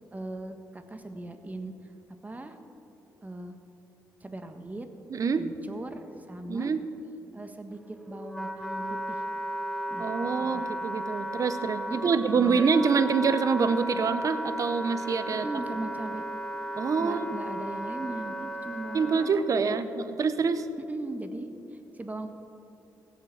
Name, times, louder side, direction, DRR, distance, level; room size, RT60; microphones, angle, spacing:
voice 1, 0.1-1.7 2.2-2.6 3.2-3.6 4.2-4.9 5.4-6.7 7.3-9.2 9.9-10.6 11.9-12.6 15.3-16.2 17.0-19.3 19.6-19.8 20.8-22.3, right 2 dB, 20° right, 7 dB, 1.3 m, -39 dB
voice 2, 5.1-5.4 6.5-6.8 10.0-15.4 16.8-17.3 18.9-20.7, right 5 dB, 50° right, 12 dB, 0.8 m, -26 dB
Wind instrument woodwind instrument, 7.7-19.3, equal, 5° left, 1.6 m, -35 dB
16.0 x 7.8 x 7.1 m, 2.9 s
cardioid pair, 70°, 7 cm